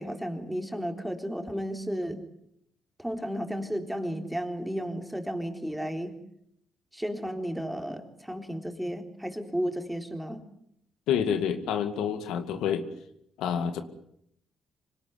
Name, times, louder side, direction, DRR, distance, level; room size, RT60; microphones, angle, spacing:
voice 1, 0.0-2.2 3.0-6.1 6.9-10.4, equal, 5° right, 5 dB, 3.9 m, -33 dB
voice 2, 11.1-12.9 13.4-13.8, left 8 dB, 90° left, 9 dB, 2.2 m, -28 dB
26.0 x 18.5 x 9.6 m, 0.74 s
cardioid pair, 90°, 0 cm